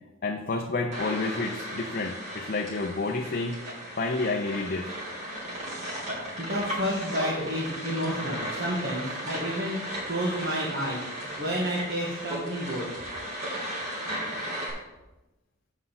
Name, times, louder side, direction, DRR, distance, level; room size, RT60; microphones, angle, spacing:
voice 1, 0.2-3.6 4.0-4.9, left 3 dB, 45° left, 2 dB, 0.6 m, -29 dB
sound 1, 0.9-14.7, equal, 35° right, 3.0 m, -36 dB
voice 2, 6.4-9.8 10.1-12.9, equal, 55° right, -5 dB, 1.5 m, -30 dB
8.1 x 5.5 x 5.7 m, 1.0 s
head